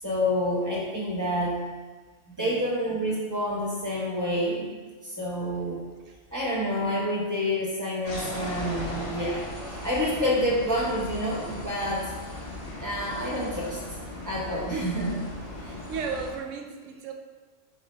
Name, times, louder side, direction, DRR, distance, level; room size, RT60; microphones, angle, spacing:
voice 1, 0.0-1.6 2.4-4.7 5.0-5.8 6.3-9.4 9.7-12.1 12.8-13.8 14.2-15.1, equal, 20° right, -5 dB, 0.7 m, -28 dB
sound 1, 8.1-16.3, left 1 dB, 30° left, 0.8 m, -37 dB
voice 2, 14.7-15.3 15.6-17.1, right 4 dB, 80° right, 4 dB, 0.9 m, -35 dB
3.9 x 3.2 x 4.1 m, 1.4 s
omnidirectional pair, 1.3 m